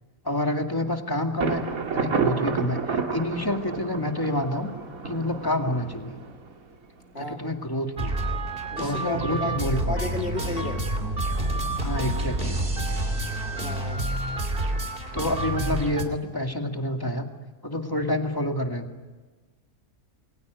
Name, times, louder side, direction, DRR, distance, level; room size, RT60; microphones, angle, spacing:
voice 1, 0.2-1.6 1.9-4.7 5.0-6.2 7.2-8.1 8.8-10.1 11.8-12.6 15.1-17.3 17.6-18.9, left 1 dB, 15° left, 4 dB, 2.1 m, -28 dB
Thunder, 1.4-7.1, right 5 dB, 65° right, 2.4 m, -30 dB
voice 2, 7.1-7.5 8.7-10.8 13.6-14.0, left 2 dB, 45° left, 2 dB, 3.1 m, -33 dB
sound 1, 8.0-16.0, right 1 dB, 35° right, 3.0 m, -28 dB
29.0 x 22.0 x 9.3 m, 1.3 s
omnidirectional pair, 1.5 m